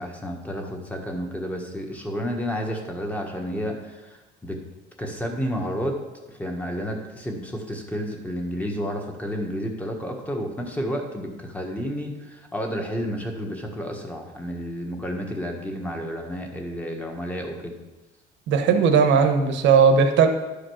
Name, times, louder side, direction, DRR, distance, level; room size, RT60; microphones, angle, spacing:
voice 1, 0.0-4.6 5.0-6.0 6.3-17.8, equal, 5° left, 1 dB, 1.4 m, -31 dB
voice 2, 18.5-20.3, right 6 dB, 70° right, 6 dB, 1.2 m, -17 dB
11.0 x 5.1 x 6.2 m, 1.1 s
cardioid pair, 150°, 20 cm